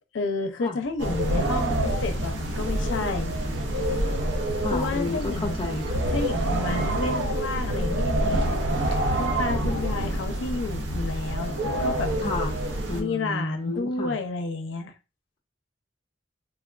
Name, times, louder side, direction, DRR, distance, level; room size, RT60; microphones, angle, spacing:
voice 1, 0.1-3.4 4.7-5.6 6.1-8.6 8.9-12.1 12.9-14.9, left 3 dB, 80° left, 0.5 m, -31 dB
sound 1, 1.0-13.0, right 1 dB, 70° right, 0.6 m, -27 dB
voice 2, 4.6-6.1 12.2-12.6 12.9-14.1, left 2 dB, 25° left, 0.5 m, -31 dB
3.4 x 2.2 x 2.4 m
head